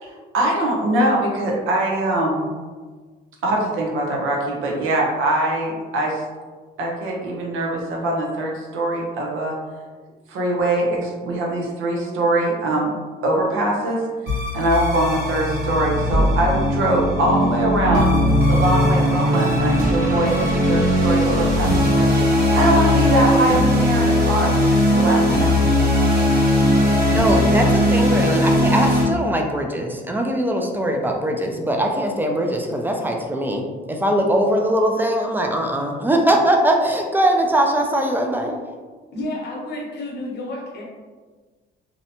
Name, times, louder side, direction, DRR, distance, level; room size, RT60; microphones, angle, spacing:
voice 1, 0.0-2.5 3.4-6.2 6.8-9.5 10.3-12.9 13.2-14.0 14.5-18.1 18.5-22.1 22.5-24.5 24.9-25.6, right 1 dB, 85° right, -1 dB, 0.6 m, -22 dB
sound 1, 14.3-29.0, left 1 dB, 55° right, 1.1 m, -18 dB
voice 2, 26.9-38.5, right 1 dB, 10° right, 2 dB, 0.4 m, -21 dB
voice 3, 39.1-40.8, left 1 dB, 55° left, -2 dB, 0.8 m, -30 dB
2.7 x 2.1 x 2.7 m, 1.4 s
cardioid pair, 90°, 20 cm